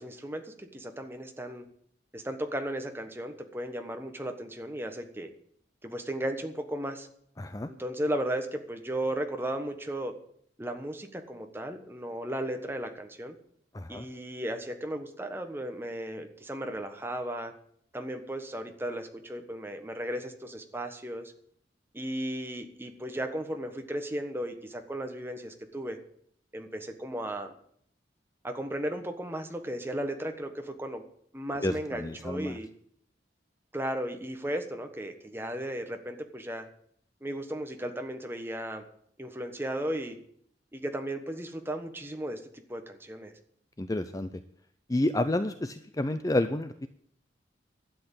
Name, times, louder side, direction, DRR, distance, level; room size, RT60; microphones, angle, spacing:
voice 1, 0.0-1.6 2.1-5.3 5.8-7.1 7.7-10.1 10.6-13.3 13.9-17.5 17.9-21.3 21.9-26.0 26.5-27.5 28.4-31.0 31.3-32.7 33.7-36.7 37.2-38.8 39.2-40.2 40.7-42.4 42.7-43.3, right 1 dB, 15° right, 5 dB, 1.3 m, -35 dB
voice 2, 7.4-7.7 13.7-14.0 31.6-32.6 43.8-44.3 44.9-46.9, left 1 dB, 20° left, 10 dB, 0.5 m, -30 dB
12.0 x 8.0 x 8.9 m, 0.65 s
head